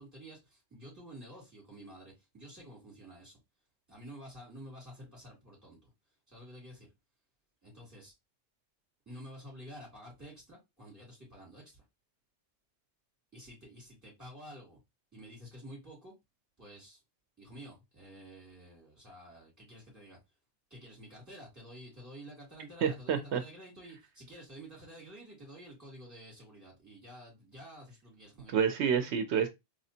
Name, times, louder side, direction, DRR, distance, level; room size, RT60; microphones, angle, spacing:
voice 1, 0.0-3.4 3.9-5.9 6.3-6.9 7.6-8.1 9.1-11.8 13.3-14.8 15.1-16.1 16.6-17.0 17.4-20.2 20.7-28.5, equal, 15° right, 2.9 m, -50 dB
voice 2, 22.8-23.4 28.5-29.5, right 7 dB, 90° right, 0.9 m, -28 dB
4.2 x 3.2 x 2.7 m
omnidirectional pair, 1.1 m